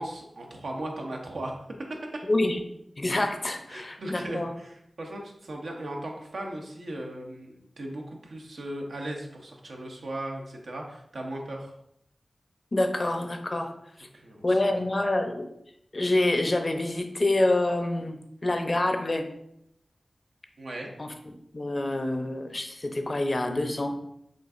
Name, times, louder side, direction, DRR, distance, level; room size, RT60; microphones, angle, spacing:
voice 1, 0.0-1.6 3.7-11.7 14.1-14.7 20.6-20.9, right 1 dB, 85° right, 0 dB, 0.7 m, -37 dB
voice 2, 2.3-2.6 3.0-4.5 12.7-13.7 14.0-14.1 14.4-15.5 15.9-19.3 21.0-24.0, left 2 dB, 50° left, 5 dB, 0.5 m, -27 dB
6.2 x 2.4 x 2.4 m, 0.76 s
cardioid pair, 40°, 0 cm